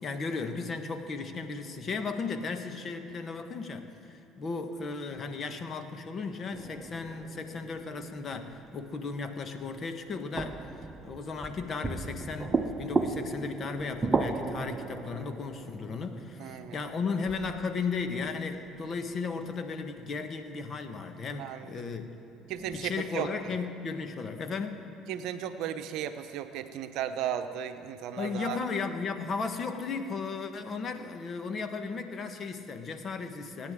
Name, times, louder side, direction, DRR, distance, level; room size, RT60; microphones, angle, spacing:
voice 1, 0.0-10.6 11.0-22.2 22.7-24.8 28.2-33.7, left 4 dB, 45° left, 7 dB, 1.3 m, -35 dB
sound 1, 6.5-9.1 10.4-18.2 22.4-23.1, right 3 dB, 25° right, 0.9 m, -35 dB
voice 2, 16.4-16.8 21.4-21.9 22.5-23.3 25.1-28.6, right 10 dB, 70° right, 9 dB, 0.8 m, -35 dB
25.5 x 9.7 x 3.7 m, 2.9 s
hypercardioid pair, 75°, 0 cm